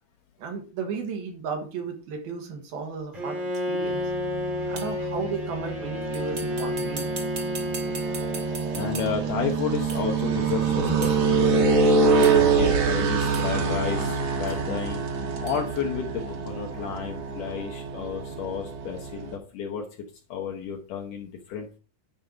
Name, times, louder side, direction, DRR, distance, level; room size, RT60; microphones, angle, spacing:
voice 1, 0.4-4.1 4.7-7.1, right 5 dB, 75° right, 3 dB, 3.4 m, -34 dB
Bowed string instrument, 3.1-9.4, left 2 dB, 20° right, 1.5 m, -31 dB
sound 1, 3.5-3.6 4.7-5.1 6.1-9.3 9.9-10.2 11.0-11.2 12.2-12.6 13.3-13.6 14.5-14.6 15.5-15.7, right 4 dB, 35° right, 1.8 m, -40 dB
sound 2, 3.8-19.4, right 4 dB, 55° right, 1.8 m, -26 dB
voice 2, 8.7-11.7 12.3-15.0 15.4-19.9 20.3-21.8, left 7 dB, 70° left, 0 dB, 2.4 m, -31 dB
10.0 x 5.5 x 5.2 m, 0.36 s
omnidirectional pair, 4.4 m